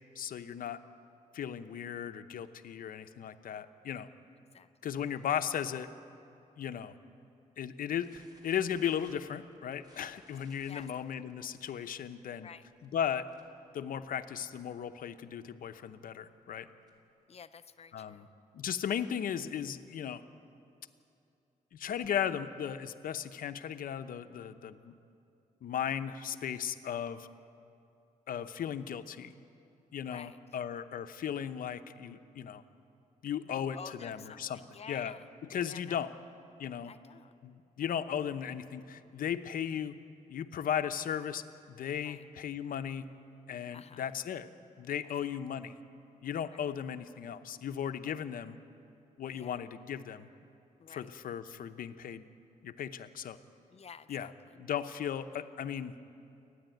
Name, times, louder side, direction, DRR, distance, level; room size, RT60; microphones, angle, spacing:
voice 1, 0.2-0.8 1.3-4.1 4.8-5.9 6.6-6.9 7.6-12.5 12.8-13.3 13.7-16.7 17.9-18.3 18.5-20.2 21.7-24.9 25.6-27.3 28.3-29.3 29.9-32.6 33.2-34.6 34.9-35.2 35.5-36.1 36.6-36.9 37.4-39.9 40.3-43.1 43.5-44.5 44.8-45.8 46.2-48.6 49.2-50.3 50.9-52.2 52.6-53.4 54.1-54.3 54.6-55.9, left 9 dB, 75° left, 10 dB, 0.8 m, -36 dB
sound 1, 8.0-13.7 13.9-14.2 14.5-14.6 14.9-15.1 15.6-17.2, right 1 dB, 30° right, 3.3 m, -63 dB
voice 2, 17.3-18.3 30.1-30.4 33.5-35.2 35.7-36.0 36.8-37.3 42.0-42.2 43.7-44.0 46.5-46.6 48.1-48.2 49.3-49.6 50.8-51.1 53.7-54.6, left 6 dB, 45° left, 11 dB, 0.6 m, -51 dB
28.5 x 10.5 x 9.1 m, 2.7 s
cardioid pair, 100°, 15 cm